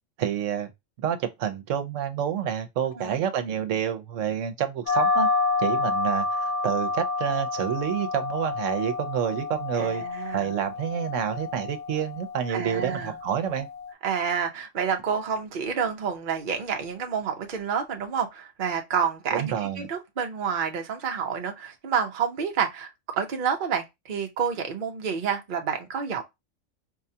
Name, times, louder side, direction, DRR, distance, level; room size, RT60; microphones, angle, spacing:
voice 1, 0.2-0.7 1.0-5.3 5.6-10.0 10.3-13.7 19.3-19.9, right 9 dB, 75° right, 1.1 m, -28 dB
sound 1, 4.9-13.9, left 4 dB, 65° left, 1.4 m, -29 dB
voice 2, 9.7-10.5 12.5-13.2 14.0-22.9 23.1-26.2, right 7 dB, 45° right, 0.8 m, -29 dB
4.7 x 2.3 x 2.7 m
omnidirectional pair, 1.3 m